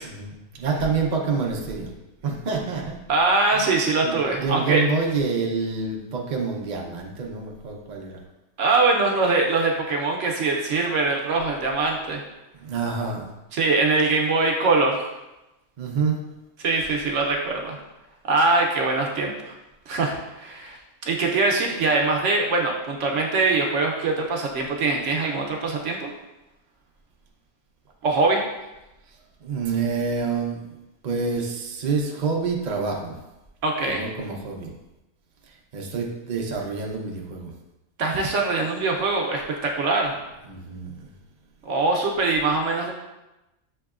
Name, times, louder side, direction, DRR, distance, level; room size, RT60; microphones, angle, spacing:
voice 1, 0.0-1.9 2.2-3.0 3.5-3.6 4.0-8.2 12.5-13.3 15.8-16.2 29.4-30.8 31.0-33.2 33.9-34.7 35.4-37.5 40.4-41.1, right 4 dB, 50° right, 0 dB, 0.5 m, -27 dB
voice 2, 3.1-4.8 8.6-12.2 13.5-15.0 16.6-17.8 18.2-19.5 19.9-20.8 21.0-26.1 28.0-28.4 33.6-34.1 38.0-40.1 41.7-42.9, right 3 dB, 65° right, 1 dB, 0.9 m, -22 dB
7.0 x 2.9 x 2.4 m, 0.98 s
omnidirectional pair, 1.5 m